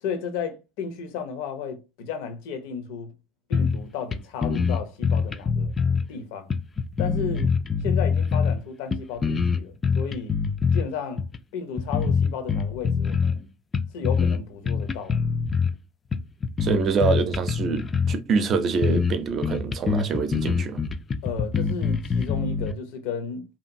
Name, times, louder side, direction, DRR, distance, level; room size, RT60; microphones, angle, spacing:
voice 1, 0.0-3.1 3.5-5.7 6.1-6.5 7.0-7.5 7.8-10.4 10.7-11.2 11.5-13.5 13.9-15.2 21.2-23.4, left 6 dB, 70° left, 0.6 m, -33 dB
sound 1, 3.5-3.9 4.1-4.2 4.4-6.1 6.5-8.6 8.9-10.8 11.2-11.4 11.8-13.4 13.7-14.4 14.7-15.7 16.1-18.2 18.5-18.6 18.8-19.1 19.4-22.7, left 5 dB, 25° left, 0.3 m, -24 dB
voice 2, 16.6-20.8, right 5 dB, 45° right, 0.5 m, -25 dB
2.7 x 2.5 x 2.5 m
hypercardioid pair, 75°, 0 cm